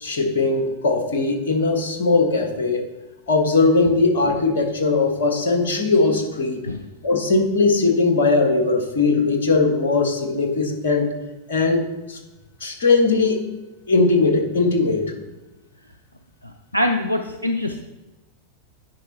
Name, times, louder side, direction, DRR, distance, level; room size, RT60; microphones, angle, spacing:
voice 1, 0.0-2.8 3.3-6.6 7.0-11.1 11.5-12.2 12.6-13.5 13.9-15.1, left 3 dB, 60° left, 4 dB, 1.4 m, -19 dB
voice 2, 16.4-17.8, left 1 dB, 90° left, 4 dB, 0.5 m, -24 dB
10.0 x 4.7 x 4.2 m, 1.1 s
figure-of-eight pair, 90°, 0 cm